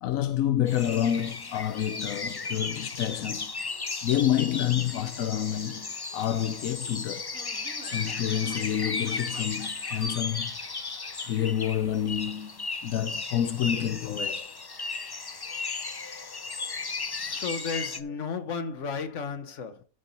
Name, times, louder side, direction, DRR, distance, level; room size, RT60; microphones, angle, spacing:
voice 1, 0.0-3.5 4.0-7.4 7.8-10.6 11.3-14.5, left 11 dB, 85° left, 1.0 m, -28 dB
sound 1, 0.7-18.0, left 4 dB, 30° left, 0.4 m, -35 dB
sound 2, 7.3-12.3, right 4 dB, 85° right, 2.0 m, -50 dB
voice 2, 17.1-19.8, left 5 dB, 65° left, 1.5 m, -34 dB
13.0 x 5.3 x 4.0 m
omnidirectional pair, 1.4 m